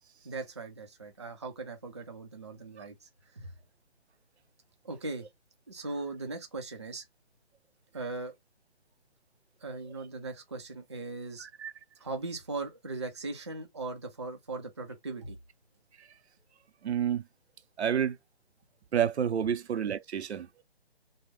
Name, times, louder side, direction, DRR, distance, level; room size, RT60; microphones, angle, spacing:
voice 1, 0.2-3.5 4.8-5.3 5.7-7.1 7.9-8.3 9.6-11.5 12.0-15.4, right 3 dB, 25° right, 0.4 m, -39 dB
voice 2, 11.4-11.7 16.8-17.2 17.8-18.2 18.9-20.5, right 9 dB, 85° right, 0.5 m, -29 dB
3.5 x 2.0 x 3.0 m
hypercardioid pair, 155°, 33 cm